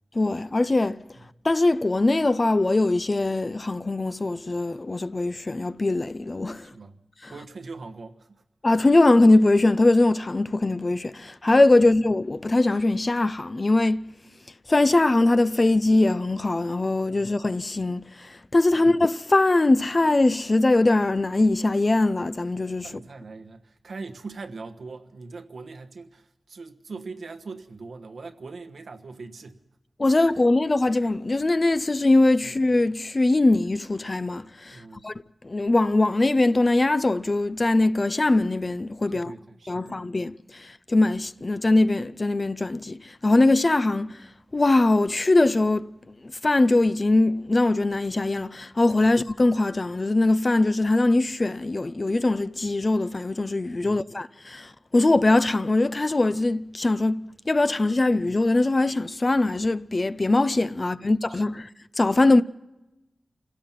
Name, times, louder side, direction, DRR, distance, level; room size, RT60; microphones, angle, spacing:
voice 1, 0.1-1.0 1.4-6.7 7.2-7.3 8.6-14.1 14.7-22.9 30.0-35.1 35.4-39.3 39.7-44.3 44.5-45.9 46.4-61.7 62.0-62.4, left 2 dB, 35° left, 0.6 m, -21 dB
voice 2, 6.6-7.0 7.3-8.4 11.8-11.9 17.1-17.2 18.7-18.9 22.8-29.6 32.4-32.5 34.7-35.1 39.1-40.0 49.0-49.2 53.8-54.0 60.8-61.4, right 4 dB, 80° right, 1.3 m, -41 dB
27.5 x 17.0 x 5.8 m
wide cardioid pair, 90°, 0 cm